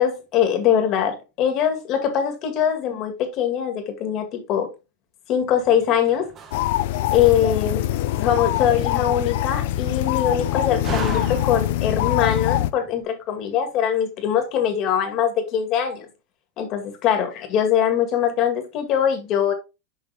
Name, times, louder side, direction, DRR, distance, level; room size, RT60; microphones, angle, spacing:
voice 1, 0.0-4.7 5.3-6.3 7.1-7.9 8.1-16.1 16.6-19.5, left 9 dB, 35° left, 2.0 m, -22 dB
Slam, 5.4-13.0, right 6 dB, 25° right, 1.0 m, -39 dB
sound 1, 6.5-12.7, left 14 dB, 60° left, 0.6 m, -23 dB
7.0 x 5.3 x 3.4 m
supercardioid pair, 160°, 0 cm